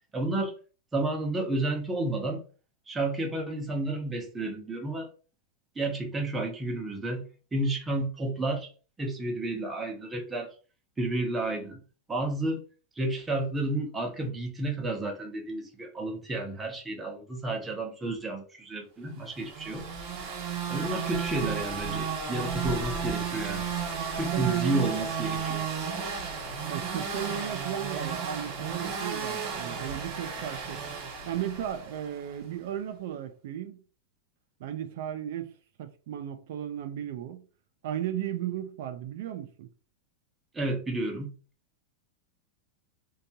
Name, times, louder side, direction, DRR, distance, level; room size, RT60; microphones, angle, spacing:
voice 1, 0.1-0.5 0.9-2.4 2.9-5.1 5.8-7.2 7.5-8.7 9.0-10.5 11.0-11.8 12.1-12.6 13.0-19.9 20.7-23.7 24.1-25.6 40.5-41.3, right 2 dB, 10° right, 0.5 m, -31 dB
sound 1, 19.3-32.3, right 6 dB, 40° right, 1.0 m, -33 dB
voice 2, 24.0-25.1 26.7-30.8 31.3-33.8 34.6-35.5 35.8-37.4 37.8-39.7, right 11 dB, 60° right, 0.4 m, -35 dB
2.6 x 2.3 x 2.7 m
supercardioid pair, 160°, 0 cm